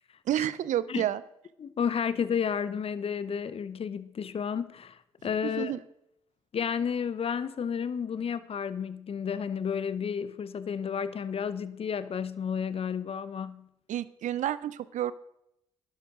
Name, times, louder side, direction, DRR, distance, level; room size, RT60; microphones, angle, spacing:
voice 1, 0.3-1.2 5.6-5.8 13.9-15.1, right 11 dB, 55° right, 0.6 m, -29 dB
voice 2, 1.6-5.7 6.5-13.7, left 7 dB, 40° left, 0.7 m, -32 dB
11.5 x 11.0 x 3.7 m
hypercardioid pair, 45°, 15 cm